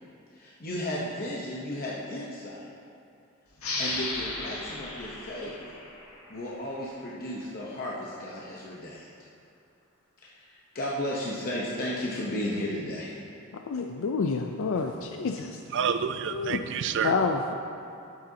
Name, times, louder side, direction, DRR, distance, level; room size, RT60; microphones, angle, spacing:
voice 1, 0.3-2.6 3.8-5.5 6.3-9.1 10.3-13.1, left 1 dB, 45° left, -5 dB, 0.8 m, -34 dB
sound 1, 3.6-6.8, left 2 dB, 85° left, 1.5 m, -35 dB
voice 2, 13.7-15.5 16.3-16.6 17.0-17.4, left 4 dB, 65° left, 4 dB, 0.4 m, -28 dB
voice 3, 15.7-17.1, right 7 dB, 60° right, 10 dB, 0.4 m, -28 dB
11.5 x 7.8 x 2.8 m, 2.6 s
head